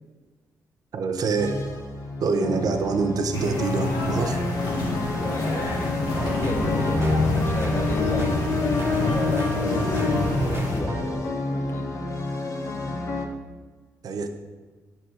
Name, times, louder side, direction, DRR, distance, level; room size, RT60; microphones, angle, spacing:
voice 1, 0.9-1.7 2.2-4.4 14.0-14.3, right 4 dB, 65° right, 7 dB, 0.9 m, -25 dB
sound 1, 1.4-13.3, left 3 dB, 50° left, 1.4 m, -28 dB
sound 2, 3.3-10.8, left 2 dB, 90° left, 1.6 m, -28 dB
voice 2, 5.1-5.6 6.4-10.0 10.7-11.1 11.5-11.9, left 2 dB, 35° left, 2 dB, 1.5 m, -34 dB
sound 3, 6.0-11.1, right 2 dB, 35° right, 1.5 m, -34 dB
8.7 x 7.0 x 4.7 m, 1.3 s
supercardioid pair, 60°, 7 cm